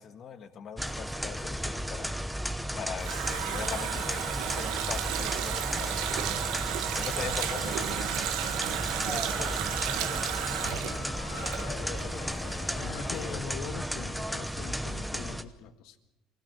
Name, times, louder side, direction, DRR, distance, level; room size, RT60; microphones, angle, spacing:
voice 1, 0.0-2.1 2.7-6.4 7.0-8.5 9.1-10.4 10.6-11.1 11.6-12.3 13.1-13.4, left 7 dB, 45° left, 8 dB, 1.8 m, -41 dB
sound 1, 0.8-15.4, equal, ahead, 0.9 m, -34 dB
Water tap faucet, 2.5-12.2 12.4-12.5, right 11 dB, 85° right, 1.3 m, -33 dB
sound 2, 5.4-13.4, left 6 dB, 60° left, 3.6 m, -45 dB
voice 2, 12.7-16.0, left 8 dB, 80° left, 9 dB, 1.6 m, -42 dB
24.5 x 16.5 x 7.0 m, 0.98 s
cardioid pair, 140°, 0 cm